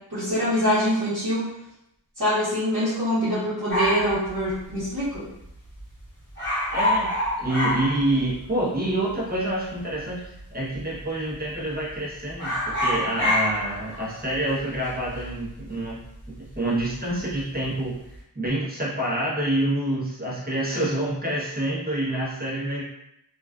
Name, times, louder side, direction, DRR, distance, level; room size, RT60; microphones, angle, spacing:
voice 1, 0.0-1.5 2.2-5.3, equal, 50° right, -13 dB, 1.0 m, -24 dB
sound 1, 3.7-5.2 5.4-5.5 5.8-6.0 6.3-8.6 8.9-9.0 9.8-10.4 10.7-11.0 11.3-12.0 12.3-16.9 17.2-17.7, left 1 dB, 25° left, 1.0 m, -27 dB
voice 2, 6.7-7.1 7.4-16.0 16.3-17.9 18.3-22.9, right 1 dB, 20° right, -6 dB, 0.8 m, -27 dB
2.4 x 2.2 x 2.3 m, 0.82 s
wide cardioid pair, 60°, 42 cm